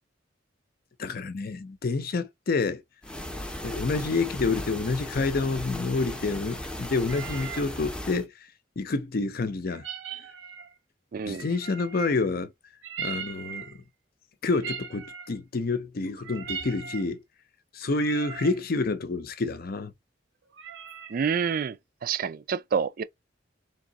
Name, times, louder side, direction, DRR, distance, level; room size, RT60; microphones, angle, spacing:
voice 1, 1.0-2.8 3.3-8.3 8.8-9.9 11.3-12.5 13.0-13.8 14.4-17.2 17.7-19.9, left 3 dB, 55° left, 0.5 m, -28 dB
sound 1, 3.0-8.2, left 1 dB, 5° left, 0.6 m, -37 dB
sound 2, 7.0-7.7 9.7-10.7 11.3-12.3 12.8-13.8 14.4-15.4 16.1-17.1 17.8-18.6 20.5-21.2, right 7 dB, 75° right, 0.7 m, -39 dB
voice 2, 11.1-11.4 21.1-21.8 22.0-23.0, right 6 dB, 50° right, 0.3 m, -28 dB
3.5 x 2.7 x 3.9 m
head